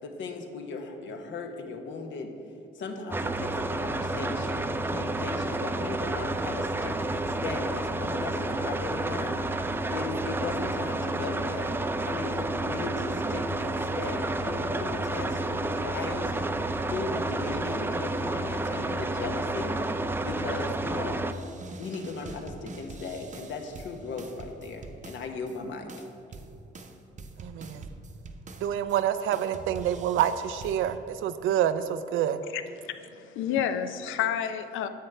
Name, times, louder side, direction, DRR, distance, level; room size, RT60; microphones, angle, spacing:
voice 1, 0.0-2.3 2.7-11.7 12.0-16.3 16.9-19.8 20.2-21.5 21.8-25.9, left 4 dB, 70° left, 1.0 m, -37 dB
sound 1, 3.1-21.3, right 2 dB, 10° right, 0.3 m, -30 dB
sound 2, 21.3-25.6 25.9-29.0 29.3-31.0, right 3 dB, 40° right, 0.7 m, -44 dB
voice 2, 27.4-27.8 28.6-32.4, right 10 dB, 85° right, 0.5 m, -27 dB
voice 3, 32.5-34.9, left 9 dB, 85° left, 0.5 m, -30 dB
10.0 x 7.4 x 3.3 m
cardioid pair, 90°, 20 cm